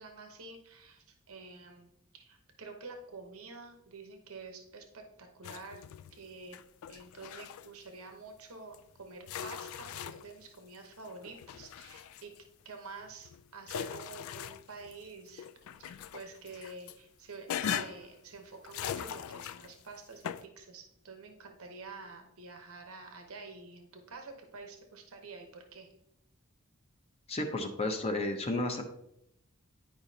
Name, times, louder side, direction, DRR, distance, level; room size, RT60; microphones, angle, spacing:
voice 1, 0.0-5.8 6.1-6.6 6.9-12.3 12.6-15.5 15.8-25.9, right 3 dB, 90° right, 4 dB, 0.9 m, -48 dB
sound 1, 5.4-6.2 6.5-7.7 8.7-8.8 9.3-10.4 11.0-12.4 13.0-15.0 15.4-17.0 17.5-18.1 18.6-19.8 20.2-20.5, left 9 dB, 75° left, 0.3 m, -40 dB
voice 2, 27.3-28.8, left 2 dB, 30° left, 3 dB, 0.7 m, -32 dB
10.5 x 4.9 x 2.7 m, 0.78 s
head